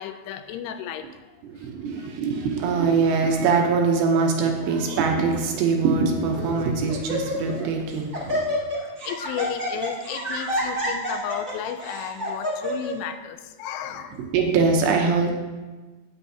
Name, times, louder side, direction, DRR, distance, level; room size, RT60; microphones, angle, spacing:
voice 1, 0.0-1.4 2.0-2.1 8.8-14.3, left 9 dB, 85° left, 8 dB, 2.9 m, -34 dB
voice 2, 1.4-8.4 14.1-15.3, right 4 dB, 75° right, 2 dB, 2.8 m, -23 dB
Laughter, 4.6-5.0 5.7-5.8 6.3-6.6 6.9-7.6 7.9-12.9, equal, 35° right, 1.6 m, -29 dB
17.0 x 6.1 x 2.7 m, 1.2 s
omnidirectional pair, 5.4 m